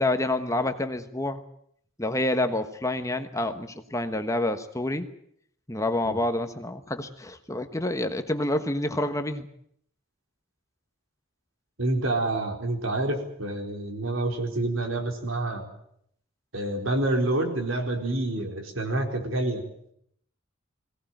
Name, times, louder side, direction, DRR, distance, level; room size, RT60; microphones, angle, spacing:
voice 1, 0.0-1.4 2.0-5.1 5.7-9.5, left 1 dB, 15° left, 8 dB, 1.2 m, -28 dB
voice 2, 11.8-15.7 16.5-19.6, right 2 dB, 70° right, 3 dB, 4.3 m, -28 dB
22.0 x 17.5 x 9.1 m, 0.70 s
head